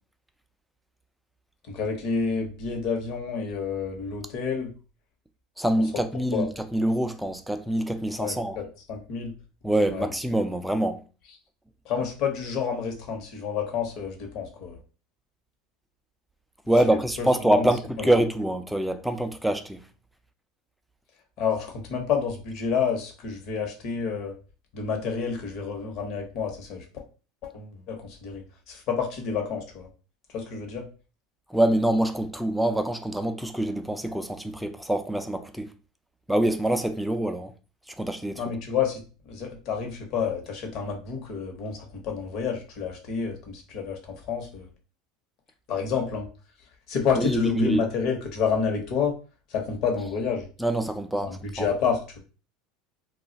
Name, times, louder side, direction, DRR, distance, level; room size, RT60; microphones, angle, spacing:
voice 1, 1.7-4.7 5.7-5.8 6.3-6.5 8.2-9.3 9.9-10.1 11.8-14.8 16.9-17.3 17.5-17.7 18.0-18.1 21.4-24.3 24.7-26.8 27.4-29.9 30.3-30.8 38.4-44.7 45.7-46.3 46.9-49.1 49.5-50.5 51.2-52.2, left 6 dB, 55° left, 1.0 m, -29 dB
voice 2, 5.6-8.6 9.6-11.0 16.7-19.8 31.5-35.7 36.3-37.5 37.9-38.4 47.2-47.8 50.6-51.7, right 1 dB, 5° right, 0.4 m, -25 dB
2.4 x 2.3 x 3.9 m
supercardioid pair, 120°, 0 cm